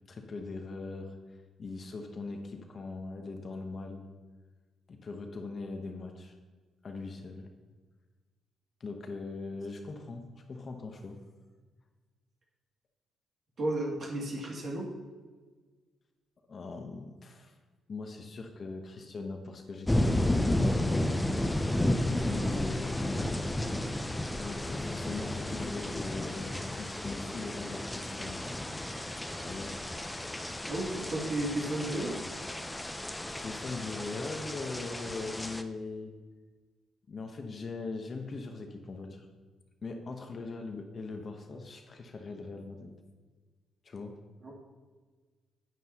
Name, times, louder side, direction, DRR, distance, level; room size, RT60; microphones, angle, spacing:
voice 1, 0.1-1.2 1.6-4.0 4.9-6.3 6.8-7.5 8.8-11.2 16.5-17.5 17.9-21.2 22.1-23.4 24.4-28.4 29.4-29.8 31.0-31.1 33.3-36.1 37.1-39.3 39.8-42.9 43.8-44.1, left 3 dB, 40° left, 4 dB, 1.0 m, -40 dB
voice 2, 13.6-14.9 30.7-32.2 44.4-44.5, right 1 dB, 50° right, -3 dB, 2.5 m, -33 dB
sound 1, 19.9-35.6, left 1 dB, 10° left, 0.5 m, -32 dB
9.6 x 9.1 x 2.9 m, 1.4 s
cardioid pair, 90°, 0 cm